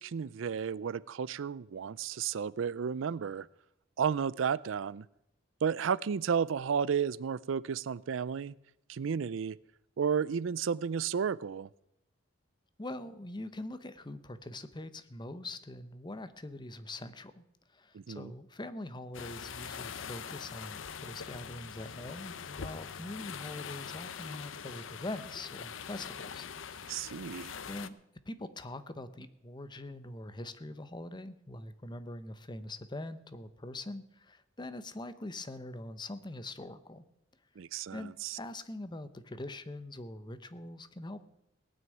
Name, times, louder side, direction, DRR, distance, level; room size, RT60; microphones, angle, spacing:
voice 1, 0.0-3.5 4.0-5.0 5.6-8.5 8.9-9.6 10.0-11.7 17.9-18.3 26.9-27.5 37.6-38.4, right 7 dB, 80° right, 20 dB, 0.4 m, -32 dB
voice 2, 12.8-17.4 17.7-26.5 27.7-27.9 28.3-37.0 37.9-41.2, left 2 dB, 25° left, 12 dB, 0.8 m, -43 dB
sound 1, 19.1-27.9, left 7 dB, 85° left, 0.7 m, -43 dB
18.0 x 6.3 x 9.1 m, 0.82 s
head